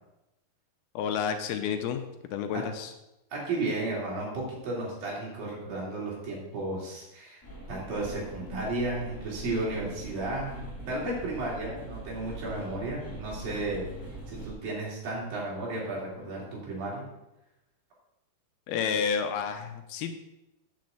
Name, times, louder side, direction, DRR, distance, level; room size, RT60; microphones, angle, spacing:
voice 1, 1.0-2.9 18.7-20.1, left 7 dB, 80° left, 7 dB, 2.6 m, -30 dB
voice 2, 3.3-7.4 7.7-13.9 14.3-17.0, right 2 dB, 60° right, -4 dB, 4.6 m, -33 dB
sound 1, 7.4-14.5, equal, 10° left, 1.4 m, -42 dB
8.5 x 5.3 x 7.7 m, 0.93 s
omnidirectional pair, 4.6 m